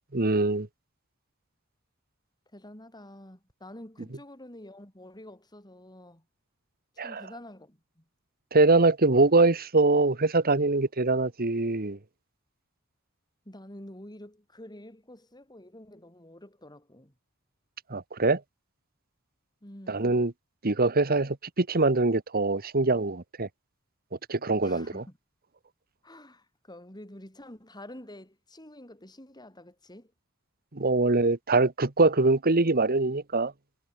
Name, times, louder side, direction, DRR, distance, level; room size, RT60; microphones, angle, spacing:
voice 1, 0.1-0.7 7.0-7.2 8.5-12.0 17.9-18.4 19.9-20.3 20.6-23.5 24.3-25.0 30.7-33.5, right 3 dB, 45° right, 1.4 m, -23 dB
voice 2, 2.5-6.3 6.9-8.0 13.5-17.1 19.6-20.1 24.6-25.2 26.0-30.1, left 1 dB, 20° left, 5.7 m, -48 dB
head